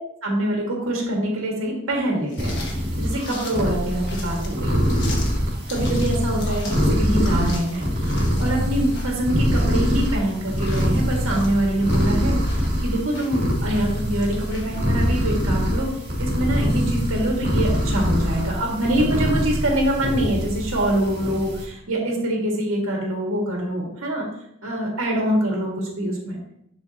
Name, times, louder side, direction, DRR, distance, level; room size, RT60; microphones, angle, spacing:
voice 1, 0.2-2.6 3.0-4.8 5.7-7.9 8.1-12.4 12.8-24.3 24.6-26.4, right 1 dB, 85° right, -1 dB, 1.8 m, -24 dB
sound 1, 2.3-14.8, left 3 dB, 55° left, 1.6 m, -40 dB
sound 2, 2.4-21.6, equal, 45° right, 2.6 m, -24 dB
11.0 x 4.3 x 2.9 m, 0.75 s
head